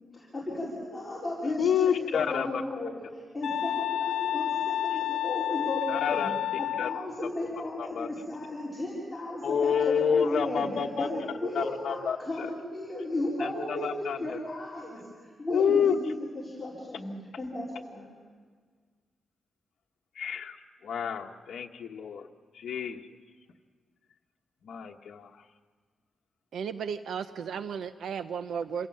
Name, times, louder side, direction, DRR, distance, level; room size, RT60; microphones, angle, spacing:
voice 1, 0.1-6.2 6.6-10.7 11.0-17.1 17.4-18.1, left 1 dB, 10° left, -8 dB, 4.4 m, -34 dB
voice 2, 1.6-2.5 5.9-6.3 6.8-6.9 7.8-8.1 9.4-11.1 11.5-12.5 13.4-14.4 15.5-15.9 20.1-22.3 22.5-23.0 24.6-25.4, left 7 dB, 70° left, 2 dB, 1.1 m, -28 dB
sound 1, 3.4-7.1, left 12 dB, 90° left, 0.8 m, -30 dB
voice 3, 26.5-28.9, right 7 dB, 75° right, 11 dB, 0.6 m, -34 dB
27.5 x 17.0 x 7.6 m, 1.6 s
wide cardioid pair, 170°, 0 cm